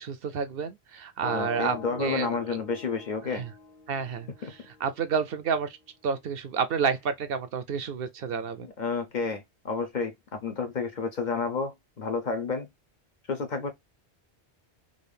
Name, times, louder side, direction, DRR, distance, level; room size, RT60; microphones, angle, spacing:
voice 1, 0.0-2.3 3.3-3.5 3.9-4.3 4.7-5.8 6.0-8.7, right 6 dB, 65° right, 0.7 m, -30 dB
sound 1, 1.2-5.1, left 4 dB, 85° left, 1.2 m, -43 dB
voice 2, 1.3-3.4 4.4-4.5 8.6-12.7 13.3-13.7, left 4 dB, 50° left, 0.7 m, -30 dB
3.7 x 2.4 x 3.3 m
omnidirectional pair, 1.1 m